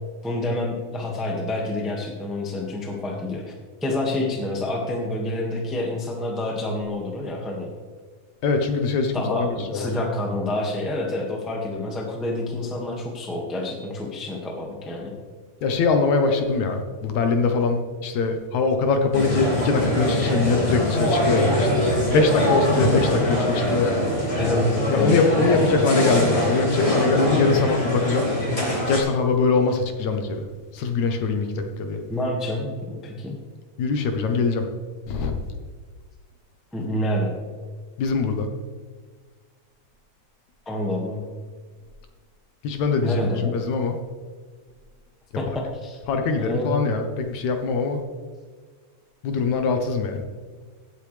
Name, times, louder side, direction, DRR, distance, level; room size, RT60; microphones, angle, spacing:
voice 1, 0.2-3.5 3.8-7.7 9.1-15.1 24.4-25.2 32.1-33.3 36.7-37.4 40.6-41.2 43.0-43.5 45.4-46.0 46.4-46.8, left 1 dB, ahead, 0 dB, 0.9 m, -28 dB
voice 2, 8.4-9.9 15.6-24.0 24.9-28.3 28.9-30.4 30.7-32.0 33.8-34.6 35.1-35.3 38.0-38.5 42.6-44.0 46.1-48.0 49.2-50.2, left 4 dB, 70° left, 5 dB, 2.3 m, -22 dB
sound 1, 19.1-29.0, equal, 20° left, 2.6 m, -23 dB
16.5 x 8.5 x 3.4 m, 1.5 s
omnidirectional pair, 3.5 m